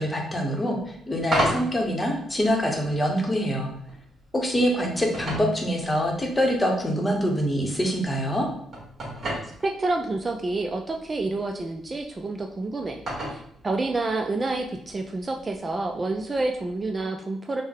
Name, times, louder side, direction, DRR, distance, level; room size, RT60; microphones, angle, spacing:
voice 1, 0.0-3.7 4.3-8.5, equal, 20° left, 1 dB, 0.8 m, -25 dB
sound 1, 0.7-17.0, right 1 dB, 45° right, 1.4 m, -37 dB
voice 2, 9.6-13.0 13.3-17.6, right 2 dB, 30° right, 3 dB, 0.3 m, -28 dB
3.6 x 2.1 x 3.6 m, 0.70 s
cardioid pair, 90°, 0 cm